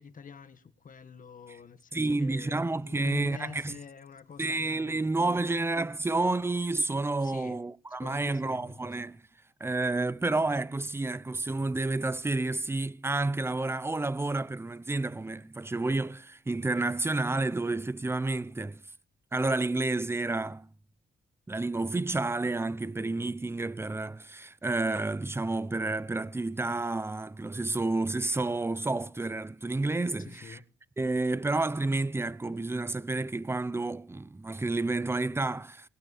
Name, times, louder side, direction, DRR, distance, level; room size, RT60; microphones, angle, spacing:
voice 1, 0.0-5.0 5.3-5.5 7.2-7.6 8.0-8.9 30.2-30.6, left 6 dB, 45° left, 1.8 m, -46 dB
voice 2, 1.9-3.8 4.4-9.2 9.6-18.8 19.3-20.7 21.5-30.6 31.0-35.9, right 2 dB, 15° right, 0.7 m, -30 dB
20.0 x 12.0 x 4.3 m
cardioid pair, 85°, 19 cm